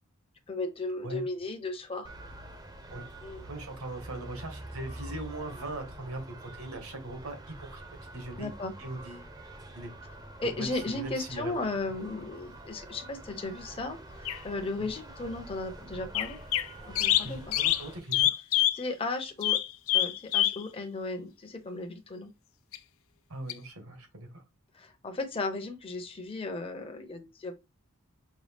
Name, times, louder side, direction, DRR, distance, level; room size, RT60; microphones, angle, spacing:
voice 1, 0.5-2.1 3.2-3.4 8.4-8.7 10.4-16.4 16.9-17.6 18.8-19.6 19.9-22.3 24.7-27.5, left 2 dB, 25° left, 0.7 m, -35 dB
sound 1, 2.0-18.0, right 1 dB, 20° right, 0.6 m, -46 dB
voice 2, 3.4-7.8 8.1-8.5 8.8-9.3 9.7-9.9 10.4-11.5 14.8-14.9 17.2-18.3 23.3-24.4, right 2 dB, 80° right, 1.4 m, -40 dB
sound 2, 14.3-14.4 16.1-16.7 17.0-18.8 19.4-20.6 22.7-22.8 23.5-23.6, left 13 dB, 70° left, 0.4 m, -26 dB
5.2 x 2.2 x 3.4 m
head